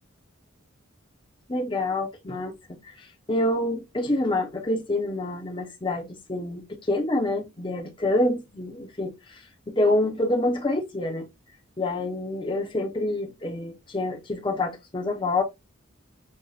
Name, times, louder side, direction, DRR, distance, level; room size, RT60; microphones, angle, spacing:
voice 1, 1.5-6.6 6.9-9.4 9.7-11.3 11.8-15.4, left 2 dB, 25° left, 0.8 m, -27 dB
5.4 x 2.4 x 2.4 m
head